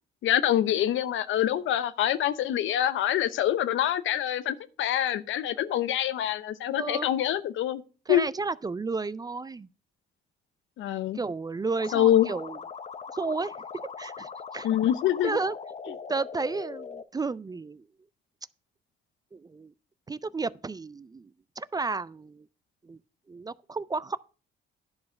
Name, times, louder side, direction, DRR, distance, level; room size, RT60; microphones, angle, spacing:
voice 1, 0.2-7.8 8.1-8.3 10.8-11.2 11.9-12.3 14.6-15.4, left 11 dB, 80° left, 0.7 m, -25 dB
voice 2, 6.8-7.1 8.1-9.7 11.1-12.6 13.1-13.5 14.0-14.7 15.2-15.5 15.9-17.8 19.3-19.7 20.1-22.5 22.8-23.0 23.3-24.2, right 3 dB, 20° right, 0.3 m, -32 dB
sound 1, 11.8-17.0, left 5 dB, 35° left, 0.7 m, -40 dB
10.5 x 4.7 x 6.2 m
cardioid pair, 90°, 20 cm